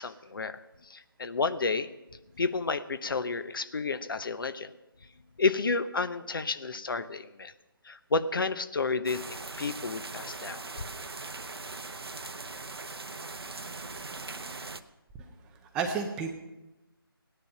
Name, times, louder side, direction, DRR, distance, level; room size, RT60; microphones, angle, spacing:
voice 1, 0.0-1.9 2.4-4.7 5.4-7.5 7.8-10.6, left 4 dB, 60° left, 12 dB, 0.9 m, -31 dB
sound 1, 9.1-14.8, right 3 dB, 80° right, 0.9 m, -40 dB
voice 2, 15.7-16.3, right 5 dB, 5° right, 3 dB, 0.4 m, -32 dB
17.0 x 10.0 x 5.8 m, 1.0 s
figure-of-eight pair, 155°, 13 cm